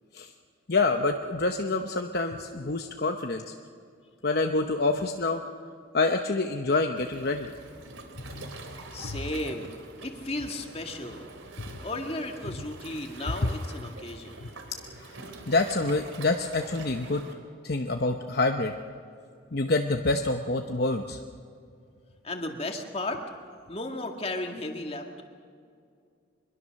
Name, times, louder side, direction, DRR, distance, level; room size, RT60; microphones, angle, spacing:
voice 1, 0.7-3.4 4.2-5.4 5.9-7.5 8.3-8.4 9.0-9.2 11.7-11.8 13.4-13.5 14.4-14.5 15.0-15.2 15.5-17.2 17.6-18.7 19.5-21.2, left 3 dB, 50° left, 4 dB, 0.9 m, -27 dB
Waves surf, 7.0-17.3, right 2 dB, 85° right, 3.1 m, -45 dB
voice 2, 8.9-9.7 10.0-11.3 11.8-14.5 22.2-23.2 23.7-25.2, left 2 dB, 30° left, 4 dB, 1.9 m, -34 dB
24.0 x 22.0 x 6.5 m, 2.3 s
head